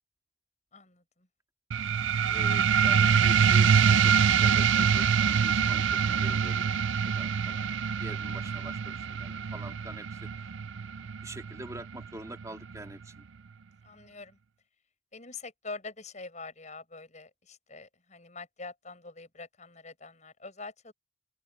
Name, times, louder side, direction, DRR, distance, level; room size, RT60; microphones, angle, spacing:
voice 1, 0.7-1.0 8.3-8.6 13.8-14.4 15.1-20.9, left 3 dB, 40° left, 7.0 m, -45 dB
sound 1, 1.7-12.8, right 7 dB, 80° right, 0.5 m, -25 dB
voice 2, 2.2-4.1 4.4-6.7 7.0-7.6 8.0-10.3 11.2-13.2, right 1 dB, 15° right, 3.1 m, -45 dB
open air
head